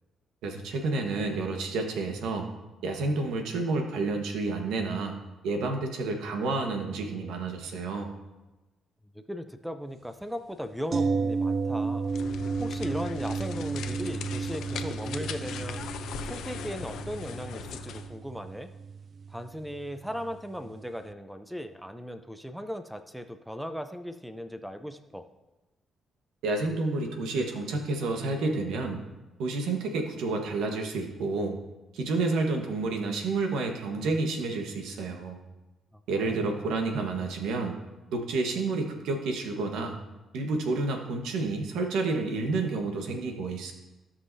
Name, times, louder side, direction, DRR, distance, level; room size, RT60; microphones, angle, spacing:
voice 1, 0.4-2.5 2.8-5.2 5.4-8.1 26.4-29.0 29.4-31.6 31.9-35.4 36.1-37.8 38.1-40.0 40.3-43.7, right 3 dB, 85° right, 3 dB, 1.3 m, -30 dB
voice 2, 9.1-12.1 12.6-15.9 16.2-18.7 19.3-25.3 36.2-36.6, equal, ahead, 9 dB, 0.6 m, -37 dB
sound 1, 10.9-20.8 21.1-21.2, right 4 dB, 50° right, 0.3 m, -33 dB
sound 2, 12.1-18.1, left 8 dB, 80° left, 0.7 m, -39 dB
16.0 x 5.6 x 2.7 m, 1.1 s
cardioid pair, 90°, 0 cm